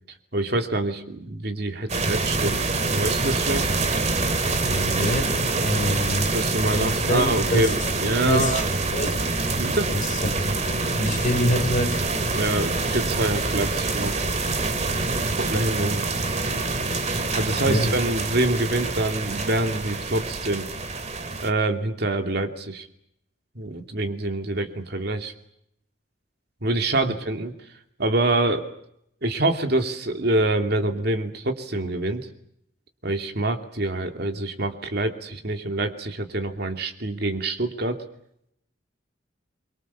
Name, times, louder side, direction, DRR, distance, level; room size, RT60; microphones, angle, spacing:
voice 1, 0.3-2.6 2.9-3.7 6.3-8.6 9.5-9.9 12.3-14.2 15.4-16.1 17.1-20.7 21.4-22.9 23.5-25.3 26.6-27.5 28.0-28.7 29.2-32.3 33.0-38.0, right 2 dB, 55° right, 6 dB, 2.7 m, -26 dB
sound 1, 1.9-21.5, right 3 dB, 35° right, 2.3 m, -26 dB
voice 2, 4.6-6.3 6.7-7.7 8.0-8.6 8.9-9.2 9.9-12.0 17.7-17.9, left 1 dB, 40° left, 3 dB, 5.7 m, -26 dB
28.0 x 24.0 x 7.1 m, 0.74 s
head